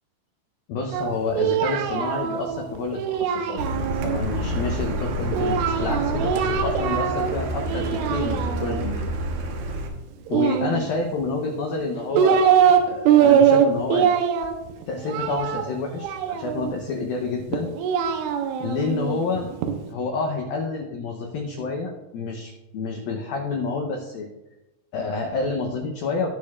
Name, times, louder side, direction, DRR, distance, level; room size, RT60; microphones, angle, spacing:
voice 1, 0.7-3.6 4.0-9.1 10.3-12.5 12.9-14.2 14.9-17.7 18.6-19.5 19.9-24.3 24.9-26.3, left 4 dB, 85° left, 2 dB, 2.0 m, -29 dB
Singing, 0.9-4.2 5.3-7.4 7.7-8.9 10.3-11.2 11.8-12.8 13.1-16.7 17.5-19.7, right 8 dB, 85° right, 3.3 m, -22 dB
Car, 3.6-9.9, right 1 dB, 70° right, 2.8 m, -28 dB
19.0 x 6.5 x 2.4 m, 1.0 s
omnidirectional pair, 5.5 m